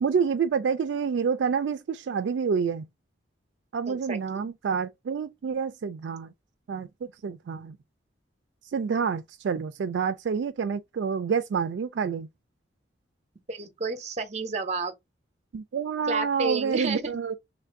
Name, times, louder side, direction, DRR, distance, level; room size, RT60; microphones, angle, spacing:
voice 1, 0.0-2.9 3.7-6.3 6.7-6.9 7.2-7.8 8.6-12.3 15.5-17.3, right 6 dB, 70° right, 0.3 m, -28 dB
voice 2, 3.9-4.2 13.5-14.9 16.1-17.1, right 3 dB, 35° right, 0.7 m, -30 dB
3.1 x 2.5 x 4.4 m
head